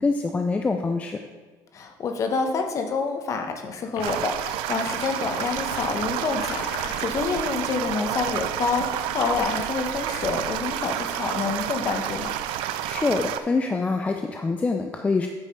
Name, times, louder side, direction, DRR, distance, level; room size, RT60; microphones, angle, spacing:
voice 1, 0.0-1.2 12.9-15.3, left 3 dB, 15° left, 5 dB, 0.4 m, -25 dB
voice 2, 1.7-12.4, left 4 dB, 35° left, 5 dB, 1.0 m, -28 dB
sound 1, 4.0-4.3 4.8-7.3, left 6 dB, 70° left, 1.0 m, -39 dB
sound 2, 4.0-13.4, right 11 dB, 80° right, 0.5 m, -30 dB
8.7 x 4.9 x 5.6 m, 1.4 s
cardioid pair, 145°, 9 cm